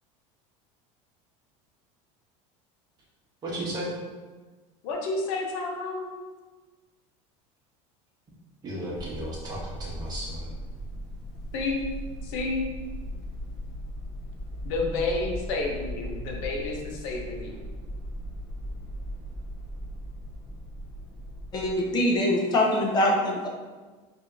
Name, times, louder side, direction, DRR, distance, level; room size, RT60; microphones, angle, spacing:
voice 1, 3.4-3.9 8.6-10.5, right 1 dB, 25° right, -5 dB, 1.0 m, -34 dB
voice 2, 4.8-6.1 11.5-11.9 12.2-12.7 14.6-17.6, left 3 dB, 65° left, 0 dB, 0.9 m, -30 dB
sound 1, 8.9-21.7, equal, ahead, 0.9 m, -38 dB
voice 3, 21.5-23.5, left 1 dB, 25° left, -1 dB, 0.7 m, -23 dB
4.8 x 2.7 x 2.6 m, 1.3 s
cardioid pair, 160°, 16 cm